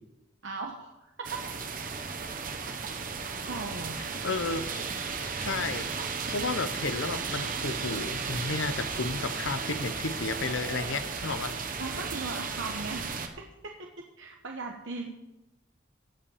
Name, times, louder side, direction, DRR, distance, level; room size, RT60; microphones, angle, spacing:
voice 1, 0.4-1.1 3.5-4.0 11.8-15.1, right 3 dB, 75° right, 1 dB, 1.2 m, -38 dB
sound 1, 1.2-13.3, right 5 dB, 45° right, 1.2 m, -34 dB
voice 2, 4.2-4.7 5.4-11.6, left 3 dB, 80° left, 12 dB, 0.9 m, -32 dB
16.5 x 5.7 x 7.2 m, 0.98 s
head